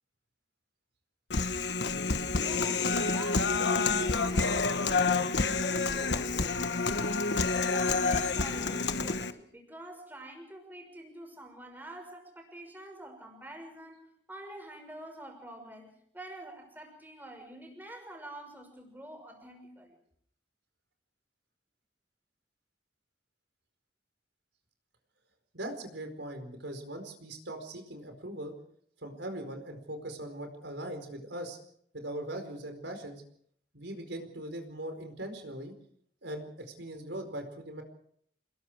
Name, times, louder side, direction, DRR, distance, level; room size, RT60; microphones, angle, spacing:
Human voice, 1.3-9.3, left 4 dB, 70° left, 1.3 m, -28 dB
voice 1, 2.4-20.0, right 1 dB, 10° right, 3 dB, 6.3 m, -46 dB
voice 2, 25.5-28.5 29.0-31.6 31.9-33.2 33.7-35.7 36.2-37.8, right 1 dB, 80° right, 6 dB, 4.7 m, -40 dB
28.5 x 21.5 x 4.8 m, 0.66 s
head